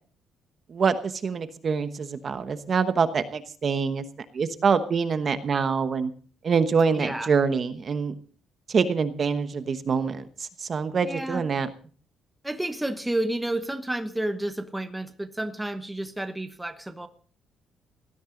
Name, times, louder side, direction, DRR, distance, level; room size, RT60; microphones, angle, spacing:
voice 1, 0.7-4.0 4.3-6.1 6.4-8.1 8.7-11.7, right 5 dB, 30° right, 10 dB, 1.1 m, -25 dB
voice 2, 6.9-7.3 11.0-11.4 12.4-17.1, right 1 dB, 5° right, 8 dB, 1.0 m, -30 dB
19.0 x 13.5 x 3.9 m, 0.41 s
cardioid pair, 180°, 0 cm